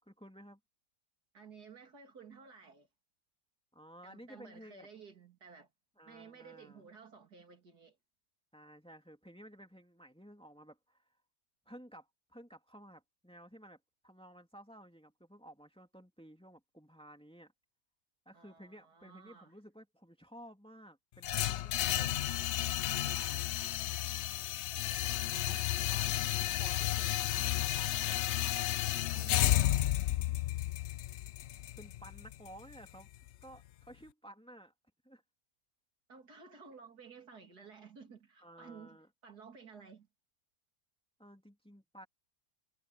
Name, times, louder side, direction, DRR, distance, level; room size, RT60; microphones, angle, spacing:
voice 1, 0.0-0.6 3.7-4.9 6.0-6.9 8.5-11.0 11.7-17.5 18.3-22.1 22.6-23.5 25.3-26.1 26.4-28.4 31.8-33.1 33.4-34.7 35.0-35.2 38.4-39.1 41.2-42.1, right 1 dB, 5° left, 2.7 m, -54 dB
voice 2, 1.3-2.9 4.0-5.7 6.0-8.0 18.3-19.5 24.7-25.7 29.1-29.9 36.1-39.0 39.2-40.1, right 5 dB, 85° right, 3.4 m, -54 dB
sound 1, 21.2-33.3, left 13 dB, 65° left, 0.7 m, -32 dB
omnidirectional pair, 1.6 m